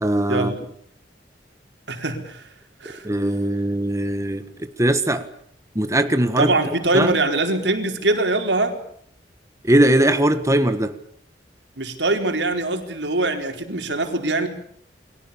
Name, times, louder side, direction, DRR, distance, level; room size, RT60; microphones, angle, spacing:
voice 1, 0.0-0.5 3.0-5.3 5.7-6.5 6.9-7.1 9.6-10.9, right 1 dB, 20° right, 9 dB, 1.5 m, -20 dB
voice 2, 1.9-2.5 2.8-3.1 6.4-8.8 11.8-14.5, right 2 dB, 85° right, 6 dB, 4.6 m, -23 dB
29.5 x 22.5 x 7.2 m, 0.64 s
head